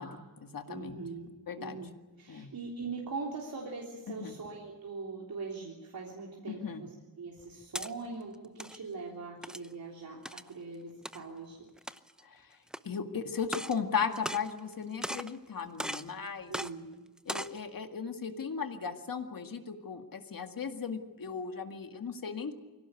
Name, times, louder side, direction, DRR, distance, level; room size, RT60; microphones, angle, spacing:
voice 1, 0.0-1.0 1.5-1.8 2.3-2.5 4.2-4.4 6.5-6.8 12.2-12.4 12.8-16.5 17.3-22.5, left 6 dB, 70° left, 6 dB, 2.1 m, -36 dB
voice 2, 0.7-1.3 1.6-1.9 2.2-6.9 7.2-11.6 16.5-16.8, right 4 dB, 80° right, -2 dB, 3.5 m, -41 dB
sound 1, 7.4-7.9 8.4-8.8 9.4-9.7 10.3-10.5 11.1-11.2 11.8-12.2 12.7-12.8 13.4-13.8 14.1-14.7 15.0-15.4 15.8-16.1 16.5-16.7 17.2-17.6, equal, ahead, 0.7 m, -38 dB
24.5 x 17.0 x 8.5 m, 1.3 s
wide cardioid pair, 115°, 35 cm